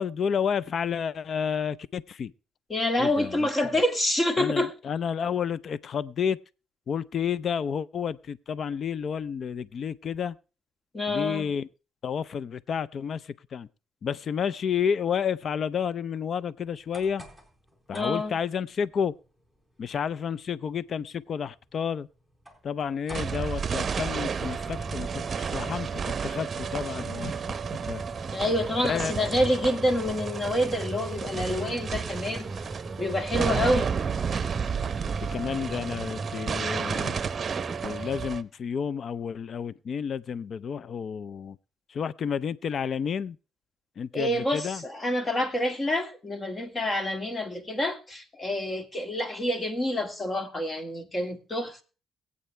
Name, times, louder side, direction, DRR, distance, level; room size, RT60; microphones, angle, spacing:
voice 1, 0.0-2.3 3.0-3.5 4.4-6.4 6.9-10.4 11.1-11.7 12.0-13.7 14.0-17.2 17.9-19.2 19.8-22.1 22.6-27.3 27.9-28.0 28.8-29.1 35.3-37.1 37.8-41.6 41.9-43.4 44.0-44.8, left 7 dB, 55° left, 0.5 m, -30 dB
voice 2, 2.7-4.7 10.9-11.5 17.9-18.3 28.3-32.5 33.0-34.0 44.1-51.8, left 1 dB, 30° left, 2.0 m, -27 dB
sound 1, 16.6-24.4, equal, 10° left, 3.7 m, -52 dB
sound 2, 23.1-38.4, right 6 dB, 40° right, 0.8 m, -32 dB
sound 3, 24.3-38.3, right 2 dB, 10° right, 4.7 m, -40 dB
22.5 x 8.5 x 3.3 m
cardioid pair, 90°, 0 cm